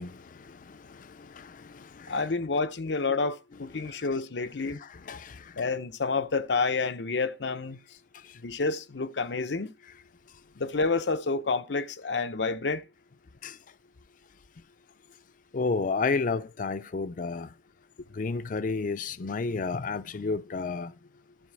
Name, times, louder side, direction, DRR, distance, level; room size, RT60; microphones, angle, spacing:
voice 1, 0.0-2.3 3.8-4.1 4.7-5.6 8.1-8.4 13.4-13.6 15.5-17.5 18.1-20.9, left 4 dB, 50° left, 0.5 m, -32 dB
voice 2, 2.1-4.8 5.6-7.8 8.4-9.7 10.6-12.8, left 4 dB, 85° left, 0.8 m, -29 dB
11.5 x 4.8 x 7.5 m
head